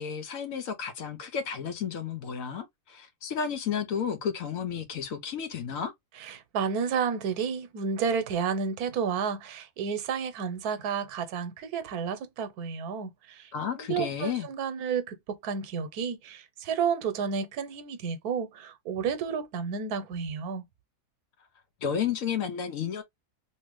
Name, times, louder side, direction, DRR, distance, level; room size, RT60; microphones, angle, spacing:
voice 1, 0.0-5.9 13.5-14.5 21.8-23.0, left 7 dB, 65° left, 1.0 m, -32 dB
voice 2, 6.2-13.5 13.8-20.6, right 6 dB, 85° right, 1.2 m, -31 dB
3.0 x 2.8 x 3.0 m
omnidirectional pair, 1.6 m